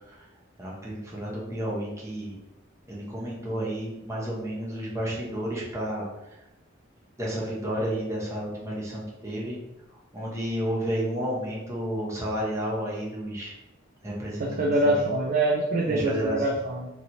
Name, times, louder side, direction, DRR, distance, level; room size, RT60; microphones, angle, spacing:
voice 1, 0.6-2.4 2.9-6.1 7.2-9.6 10.1-13.5 14.0-15.1 15.9-16.5, equal, 15° right, -5 dB, 0.7 m, -31 dB
voice 2, 14.4-16.9, right 2 dB, 45° right, -1 dB, 0.3 m, -24 dB
2.9 x 2.8 x 2.6 m, 0.93 s
head